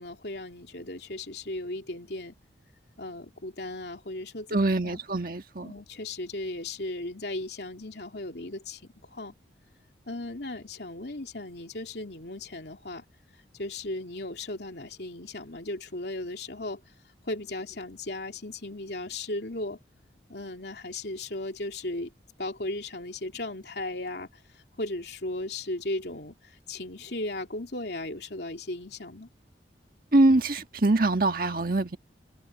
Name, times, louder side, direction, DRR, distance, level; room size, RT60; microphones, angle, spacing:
voice 1, 0.0-2.4 3.0-5.0 5.6-9.3 10.1-13.0 13.5-16.8 17.2-19.8 20.3-22.1 22.4-29.3, left 2 dB, 70° left, 2.9 m, -36 dB
voice 2, 4.5-5.7 30.1-32.0, right 2 dB, 50° right, 1.6 m, -23 dB
open air
head